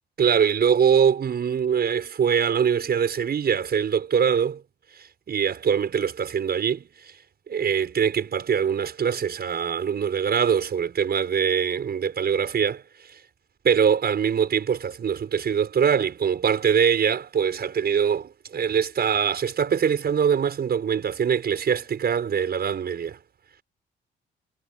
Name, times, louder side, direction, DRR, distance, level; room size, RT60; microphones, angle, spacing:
voice 1, 0.2-4.6 4.9-7.1 7.5-13.2 13.6-23.2, right 7 dB, 55° right, 6.4 m, -23 dB
cardioid pair, 90°, 20 cm